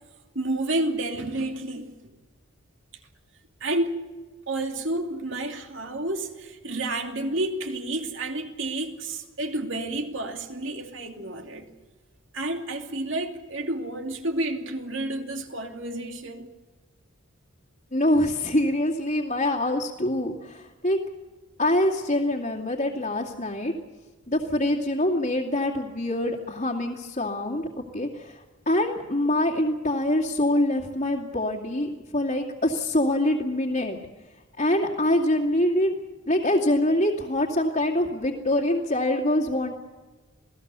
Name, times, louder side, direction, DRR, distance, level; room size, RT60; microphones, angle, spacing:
voice 1, 0.3-2.1 3.6-4.0 4.5-11.7 12.3-16.5, right 2 dB, 60° right, 2.6 m, -30 dB
voice 2, 17.9-21.0 21.6-23.7 24.3-27.7 27.9-34.0 34.6-36.0 36.3-39.7, left 1 dB, 35° left, 2.4 m, -25 dB
27.5 x 18.0 x 6.9 m
head